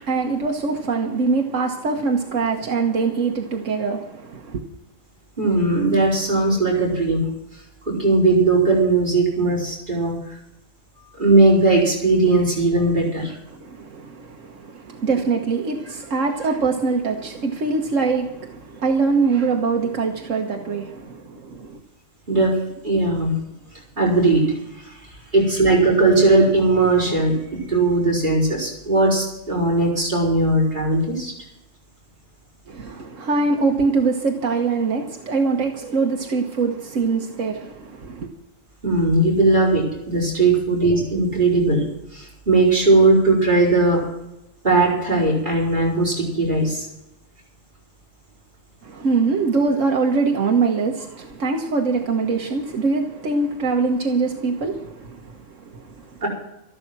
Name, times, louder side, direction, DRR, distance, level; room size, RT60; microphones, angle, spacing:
voice 1, 0.0-4.6 13.3-21.8 32.7-38.3 48.8-56.2, right 4 dB, 80° right, 1.6 m, -23 dB
voice 2, 5.4-7.3 7.8-10.1 11.2-13.3 22.3-22.6 22.8-23.4 24.0-25.0 25.3-31.3 38.8-41.8 42.1-44.0 44.6-46.9 56.2-56.3, right 2 dB, 40° right, 5.1 m, -18 dB
13.5 x 12.0 x 6.1 m
omnidirectional pair, 1.3 m